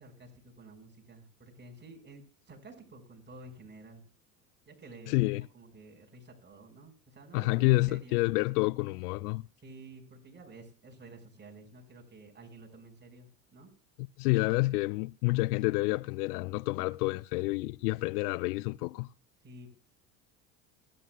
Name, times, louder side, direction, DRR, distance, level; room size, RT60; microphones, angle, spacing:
voice 1, 0.0-4.0 4.6-8.2 9.6-13.7 19.4-19.7, right 2 dB, 20° right, 4.9 m, -51 dB
voice 2, 5.1-5.5 7.3-9.4 14.2-19.1, left 22 dB, 70° left, 0.5 m, -28 dB
28.5 x 10.0 x 2.3 m
hypercardioid pair, 75°, 49 cm